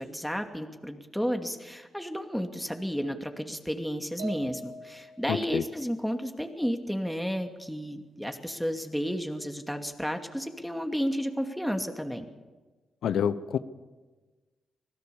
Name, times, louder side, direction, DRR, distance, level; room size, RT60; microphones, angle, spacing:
voice 1, 0.0-12.3, equal, ahead, 5 dB, 2.5 m, -32 dB
sound 1, 4.2-5.4, right 2 dB, 90° right, 7.1 m, -41 dB
voice 2, 5.3-5.6 13.0-13.6, left 8 dB, 80° left, 14 dB, 0.9 m, -27 dB
25.5 x 16.5 x 7.1 m, 1.3 s
supercardioid pair, 50°, 0 cm